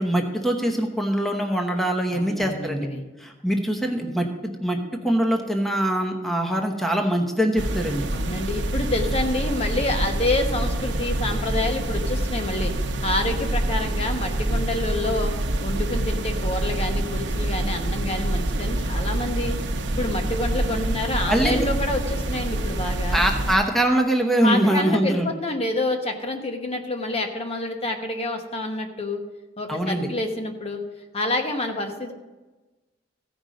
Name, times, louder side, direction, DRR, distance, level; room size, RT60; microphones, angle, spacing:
voice 1, 0.0-2.9 3.2-8.1 21.3-21.6 23.1-25.3 29.7-30.1, right 1 dB, ahead, 3 dB, 0.9 m, -23 dB
voice 2, 2.1-3.0 8.1-12.7 13.0-15.3 15.6-19.6 20.0-23.2 24.4-29.2 29.6-30.8 31.1-32.1, left 2 dB, 35° left, 4 dB, 1.1 m, -28 dB
sound 1, 7.6-23.6, right 1 dB, 75° right, 0.8 m, -26 dB
15.0 x 5.3 x 5.1 m, 1.2 s
head